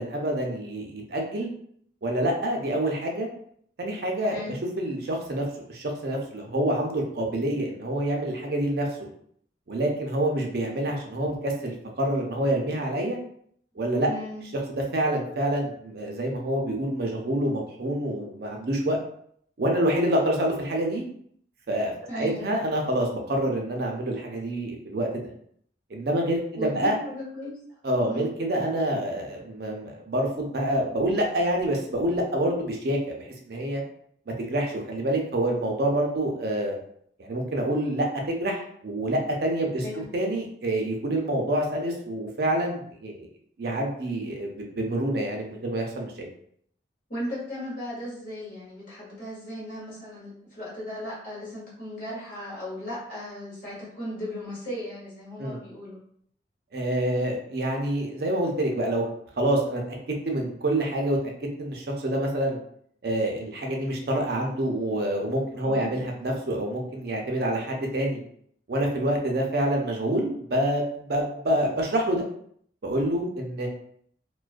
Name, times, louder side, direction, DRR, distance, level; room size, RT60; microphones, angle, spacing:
voice 1, 0.0-1.5 2.0-3.3 3.8-4.4 4.8-9.1 9.7-13.2 13.8-14.1 14.9-19.0 19.6-21.0 21.7-25.3 25.9-27.0 27.8-33.8 34.4-36.8 37.2-39.8 40.1-43.3 43.6-46.3 55.4-55.6 56.7-59.0 59.4-60.0 60.2-61.2 61.6-62.6 63.0-68.2 68.7-72.2 72.8-73.7, right 1 dB, 55° right, 1 dB, 0.5 m, -27 dB
voice 2, 3.9-4.6 13.7-14.4 22.1-22.5 26.6-27.5 28.1-28.3 39.8-40.1 47.1-56.0 65.5-65.9, left 1 dB, 45° left, -7 dB, 1.1 m, -37 dB
2.3 x 2.2 x 2.4 m, 0.65 s
head